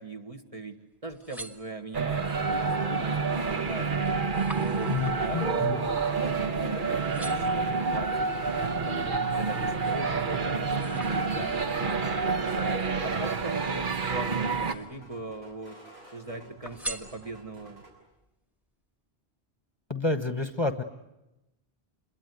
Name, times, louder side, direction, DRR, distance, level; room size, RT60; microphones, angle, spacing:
voice 1, 0.0-3.1 3.4-4.2 4.5-8.3 8.6-12.8 13.0-15.8 16.1-17.8, right 2 dB, 35° right, 4 dB, 1.9 m, -41 dB
sound 1, 0.9-2.2 2.8-3.2 3.6-6.7 7.0-7.7 8.3-9.8 10.2-11.7 12.6-13.8 14.3-15.1 15.4-16.2 16.6-17.7 18.2-18.3, right 1 dB, ahead, 1.5 m, -45 dB
sound 2, 1.9-14.7, right 4 dB, 55° right, 1.4 m, -28 dB
sound 3, 2.3-17.9, right 1 dB, 85° right, 6.9 m, -52 dB
voice 2, 4.9-5.8 19.9-20.8, left 3 dB, 25° left, 9 dB, 1.2 m, -29 dB
28.0 x 22.0 x 9.5 m, 0.95 s
omnidirectional pair, 1.0 m